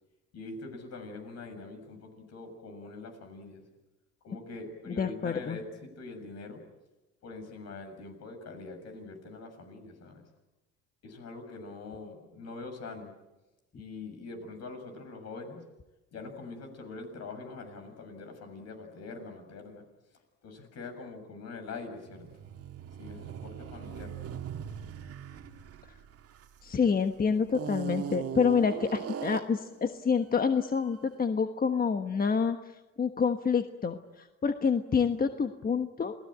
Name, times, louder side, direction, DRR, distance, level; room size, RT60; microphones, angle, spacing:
voice 1, 0.3-3.6 4.2-6.6 7.2-10.2 11.0-13.1 13.7-15.6 16.1-19.8 20.4-22.3 23.0-24.2, left 3 dB, 60° left, 6 dB, 6.9 m, -43 dB
voice 2, 4.9-5.6 26.6-36.2, left 6 dB, 30° left, 7 dB, 1.3 m, -28 dB
sound 1, 22.0-26.9 27.5-29.7, right 8 dB, 55° right, 2.0 m, -40 dB
28.0 x 19.0 x 8.8 m, 1.1 s
cardioid pair, 100°, 29 cm